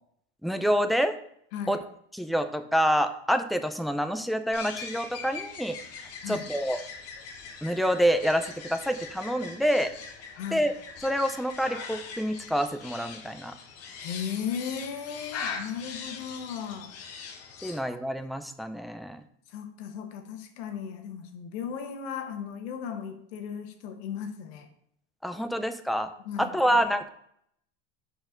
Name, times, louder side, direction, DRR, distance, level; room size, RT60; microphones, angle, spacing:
voice 1, 0.4-1.2 1.7-1.8 2.1-5.8 6.3-6.8 7.6-9.9 10.5-10.7 11.0-13.5 17.6-19.2 25.2-26.1 26.4-27.1, equal, ahead, 8 dB, 0.5 m, -27 dB
voice 2, 1.5-1.8 6.2-6.5 10.3-10.7 14.0-16.9 17.6-17.8 19.5-24.7 25.5-25.6 26.2-26.5, left 7 dB, 80° left, 6 dB, 1.2 m, -36 dB
sound 1, 4.5-17.8, left 5 dB, 45° left, 1.3 m, -41 dB
5.7 x 4.5 x 6.4 m, 0.70 s
supercardioid pair, 115°, 32 cm